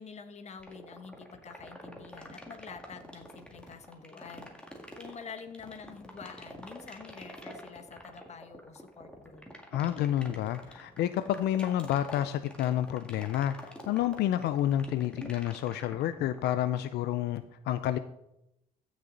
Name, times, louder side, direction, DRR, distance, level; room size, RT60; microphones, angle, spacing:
voice 1, 0.0-4.5 5.0-9.4, left 6 dB, 40° left, 9 dB, 1.3 m, -47 dB
sound 1, 0.6-16.6, equal, 5° left, 1.9 m, -46 dB
voice 2, 9.7-18.0, left 12 dB, 80° left, 12 dB, 0.5 m, -29 dB
15.0 x 6.5 x 4.0 m, 0.83 s
cardioid pair, 115°, 17 cm